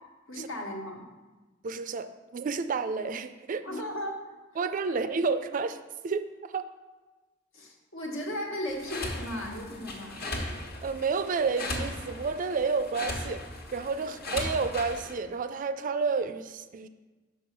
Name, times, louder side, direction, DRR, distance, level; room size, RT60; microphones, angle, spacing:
voice 1, 0.3-1.1 3.6-4.6 5.1-5.2 7.5-10.2 14.0-14.1, left 1 dB, 75° left, 0 dB, 1.4 m, -36 dB
voice 2, 1.6-3.6 4.6-6.7 10.8-13.4 13.7-16.9, right 4 dB, 40° right, 11 dB, 0.3 m, -30 dB
sound 1, 8.7-15.1, left 1 dB, 50° left, 1.2 m, -37 dB
6.1 x 5.4 x 5.9 m, 1.2 s
head